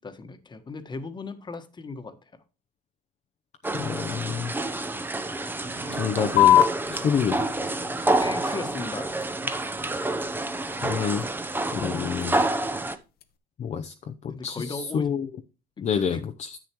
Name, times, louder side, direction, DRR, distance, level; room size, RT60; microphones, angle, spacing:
voice 1, 0.0-2.3 8.2-9.1 9.4-9.7 14.3-15.1 15.8-16.2, left 3 dB, 25° left, 1.3 m, -37 dB
sound 1, 3.6-13.0, right 2 dB, 10° right, 0.8 m, -28 dB
voice 2, 3.7-4.5 5.9-7.5 10.8-11.3 11.7-12.4 13.6-15.3 15.8-16.6, left 7 dB, 45° left, 0.7 m, -28 dB
sound 2, 5.6-10.3, right 3 dB, 40° right, 2.5 m, -46 dB
sound 3, 6.4-13.4, left 12 dB, 65° left, 1.1 m, -28 dB
10.0 x 8.2 x 3.0 m
cardioid pair, 110°, 17 cm